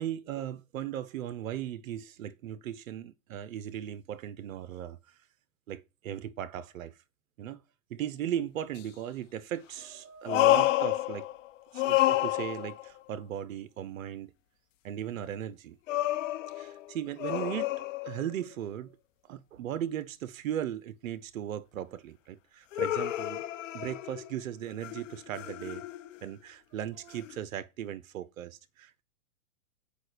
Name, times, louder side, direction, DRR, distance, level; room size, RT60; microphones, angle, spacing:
voice 1, 0.0-5.3 5.7-7.0 7.4-7.6 7.9-11.3 11.7-14.3 14.8-15.8 16.5-17.7 18.0-18.9 19.2-23.4 23.7-25.8 26.2-29.0, right 10 dB, 75° right, 0.8 m, -37 dB
sound 1, 8.8-8.9 10.2-11.5 11.7-12.9 15.9-18.4 22.7-24.4 24.8-26.2 27.3-27.4, left 15 dB, 60° left, 1.0 m, -29 dB
8.3 x 5.0 x 6.6 m
hypercardioid pair, 120°, 41 cm